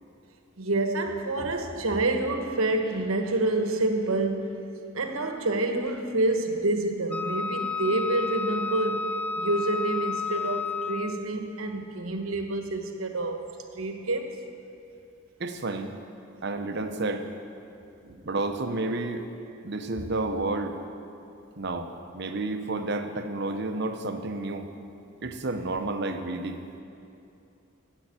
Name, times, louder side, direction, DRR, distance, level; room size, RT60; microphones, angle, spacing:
voice 1, 0.6-4.5 4.9-13.4 13.7-14.4 18.0-18.2, right 2 dB, 80° right, 5 dB, 1.2 m, -28 dB
Wind instrument woodwind instrument, 7.1-11.3, left 4 dB, 5° left, 0.3 m, -31 dB
voice 2, 15.4-15.9 16.4-17.3 18.2-19.3 19.6-20.8 21.6-24.7 25.2-26.6, right 2 dB, 55° right, 7 dB, 0.8 m, -30 dB
10.5 x 7.8 x 8.8 m, 2.7 s
head